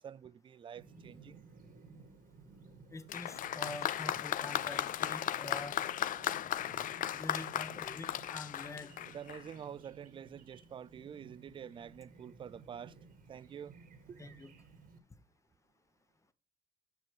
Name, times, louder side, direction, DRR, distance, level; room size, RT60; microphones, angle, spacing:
voice 1, 0.0-1.4 9.1-13.0 13.3-13.8 14.1-14.2, right 8 dB, 30° right, 0.4 m, -47 dB
Chirp tweet, 0.8-15.0, right 4 dB, 55° right, 1.8 m, -57 dB
voice 2, 2.9-5.8 7.1-8.9 14.2-14.5, left 2 dB, 15° left, 1.2 m, -45 dB
Applause, 3.1-9.5, left 11 dB, 50° left, 0.5 m, -36 dB
9.5 x 6.0 x 5.1 m
cardioid pair, 110°, 17 cm